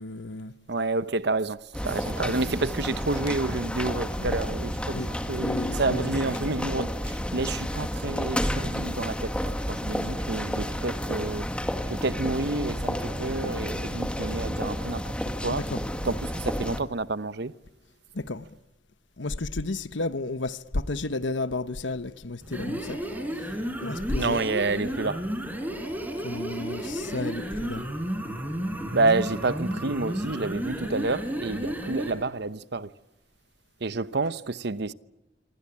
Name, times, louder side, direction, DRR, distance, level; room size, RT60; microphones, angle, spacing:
voice 1, 0.0-0.5 2.2-2.4 4.3-4.4 4.9-6.2 15.5-15.8 18.1-18.5 19.2-23.0 23.4-23.5 23.8-24.4 26.2-27.8, left 2 dB, 80° left, 1.2 m, -32 dB
voice 2, 0.7-5.0 5.3-11.4 11.9-15.1 15.4-15.6 16.0-17.5 24.2-25.2 28.9-32.9 33.8-34.9, right 3 dB, 60° right, 0.9 m, -29 dB
sound 1, 1.7-16.8, equal, 5° left, 2.0 m, -31 dB
sound 2, 22.4-32.2, equal, 10° right, 4.7 m, -32 dB
26.5 x 25.5 x 8.7 m
head